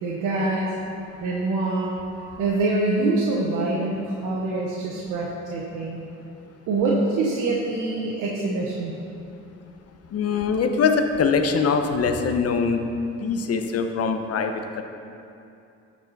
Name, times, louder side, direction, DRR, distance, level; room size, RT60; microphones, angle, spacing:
voice 1, 0.0-0.7 1.2-1.9 2.4-6.0 6.7-9.0, right 2 dB, 85° right, -4 dB, 1.0 m, -25 dB
voice 2, 10.1-12.8 13.2-14.8, left 5 dB, 55° left, 6 dB, 0.8 m, -23 dB
12.5 x 4.8 x 4.0 m, 2.6 s
cardioid pair, 90°, 30 cm